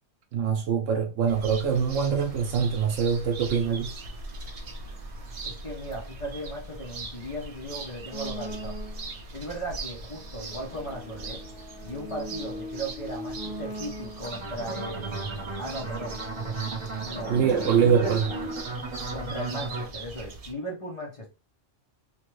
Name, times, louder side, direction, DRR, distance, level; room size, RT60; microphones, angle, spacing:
voice 1, 0.3-3.9 17.3-18.3, right 7 dB, 90° right, 1.0 m, -24 dB
sound 1, 1.3-20.5, right 2 dB, 45° right, 0.5 m, -40 dB
voice 2, 5.2-8.8 9.3-11.4 11.8-16.2 17.0-18.5 19.1-21.3, equal, 35° left, 0.6 m, -37 dB
sound 2, 8.1-9.2 10.0-14.5 15.2-18.6, equal, 75° left, 1.2 m, -40 dB
sound 3, 14.2-19.9, right 3 dB, 30° right, 0.8 m, -35 dB
3.1 x 2.2 x 3.1 m
omnidirectional pair, 1.3 m